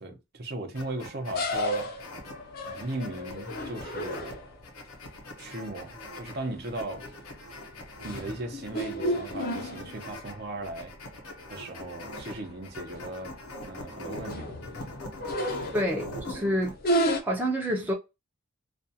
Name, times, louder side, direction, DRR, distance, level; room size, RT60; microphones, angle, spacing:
voice 1, 0.0-1.9 2.6-4.4 5.4-7.1 8.0-10.9 11.5-13.4 13.6-14.6, right 2 dB, 45° right, 0.7 m, -37 dB
sound 1, 0.7-16.8, left 1 dB, 85° left, 0.9 m, -43 dB
sound 2, 1.3-4.6 6.3-6.6 7.0-7.3 7.8-10.3 10.7-10.8 11.1-11.2 12.1-12.2 12.5-12.6 13.0-13.3 13.9-16.1 16.8-17.2, equal, 45° left, 0.5 m, -32 dB
voice 2, 15.7-17.9, equal, 10° right, 0.5 m, -29 dB
2.4 x 2.3 x 2.7 m
head